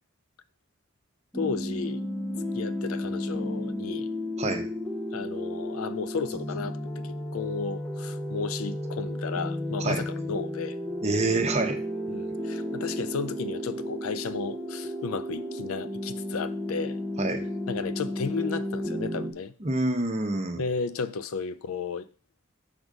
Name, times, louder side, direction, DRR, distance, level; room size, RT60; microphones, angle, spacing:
voice 1, 1.3-2.0 2.5-4.1 5.1-10.8 12.1-17.0 17.7-19.5 20.6-22.1, left 5 dB, 90° left, 0.5 m, -33 dB
sound 1, 1.3-19.3, left 1 dB, 5° left, 0.7 m, -33 dB
voice 2, 11.0-11.8 17.2-17.4 19.6-20.6, right 2 dB, 30° right, 0.8 m, -27 dB
6.1 x 3.7 x 5.2 m
head